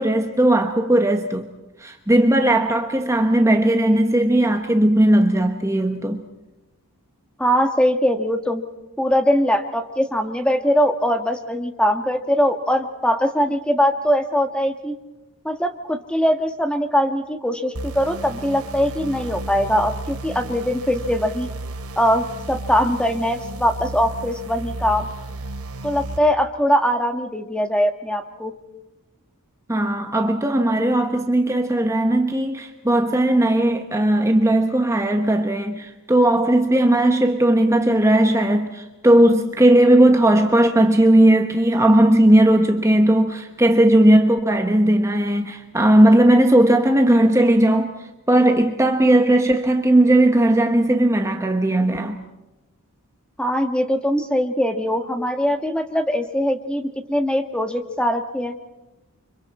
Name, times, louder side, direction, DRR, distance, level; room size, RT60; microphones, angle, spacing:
voice 1, 0.0-1.5 1.8-6.2 29.7-52.2, right 1 dB, 15° right, 1.1 m, -17 dB
voice 2, 7.4-8.6 9.0-15.0 15.4-21.5 22.0-25.1 25.8-28.5 53.4-58.5, equal, 5° left, 1.4 m, -21 dB
sound 1, 17.7-26.2, right 2 dB, 85° right, 2.7 m, -33 dB
30.0 x 25.5 x 4.3 m
head